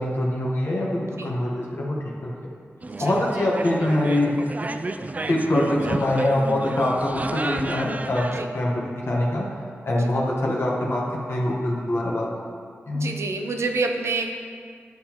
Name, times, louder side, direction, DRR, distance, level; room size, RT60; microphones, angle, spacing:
voice 1, 0.0-2.5 3.0-4.3 5.3-8.3 8.5-8.7 9.1-9.4 9.9-11.0 11.3-12.3 12.9-13.1, left 1 dB, 60° left, -4 dB, 1.1 m, -24 dB
sound 1, 2.8-8.4, right 2 dB, 35° right, 0.3 m, -32 dB
voice 2, 12.9-14.3, right 3 dB, 75° right, 4 dB, 0.6 m, -27 dB
9.0 x 5.8 x 2.9 m, 2.1 s
cardioid pair, 50°, 5 cm